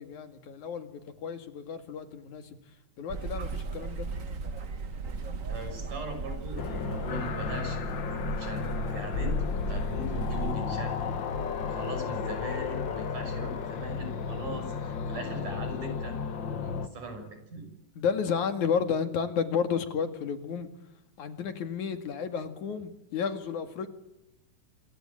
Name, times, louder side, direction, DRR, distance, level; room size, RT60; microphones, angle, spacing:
voice 1, 0.0-2.6 3.0-4.1 18.0-20.7 21.2-23.9, left 6 dB, 65° left, 9 dB, 3.4 m, -32 dB
sound 1, 3.1-10.5, right 4 dB, 45° right, 1.0 m, -36 dB
voice 2, 5.5-11.1 11.6-16.2 16.4-17.6, right 1 dB, 75° right, 7 dB, 7.8 m, -40 dB
sound 2, 6.6-16.9, left 6 dB, 50° left, 1.5 m, -33 dB
27.0 x 23.0 x 8.9 m, 0.88 s
omnidirectional pair, 3.7 m